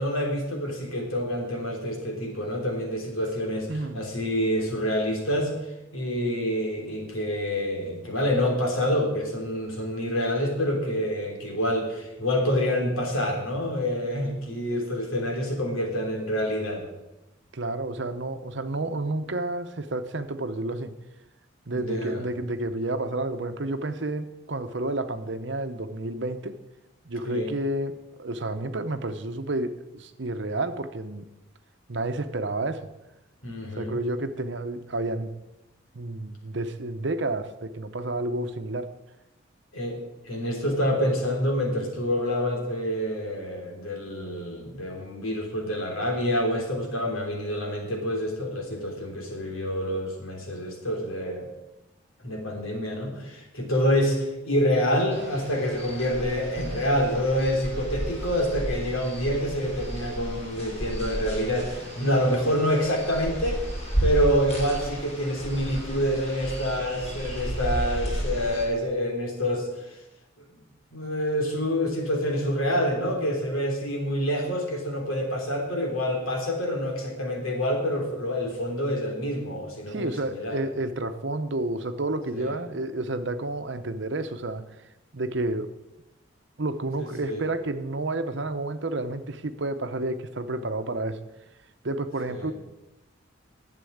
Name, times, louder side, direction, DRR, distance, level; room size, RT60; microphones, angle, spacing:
voice 1, 0.0-3.7 3.9-5.5 5.9-16.8 21.7-22.2 27.2-27.5 33.4-34.0 39.7-51.5 52.2-63.6 64.0-69.7 70.4-70.5 70.9-80.6 82.3-82.6 87.0-87.4 92.3-92.5, equal, 85° left, 1 dB, 3.3 m, -27 dB
voice 2, 3.7-4.1 17.5-20.9 21.7-26.6 27.0-31.3 31.9-32.9 33.8-35.3 35.9-38.9 79.9-84.6 85.1-85.7 86.6-91.2 91.8-92.5, right 2 dB, 60° right, 9 dB, 0.9 m, -30 dB
sound 1, 55.1-68.6, right 1 dB, 30° left, 3.4 m, -33 dB
11.5 x 7.6 x 8.6 m, 0.96 s
head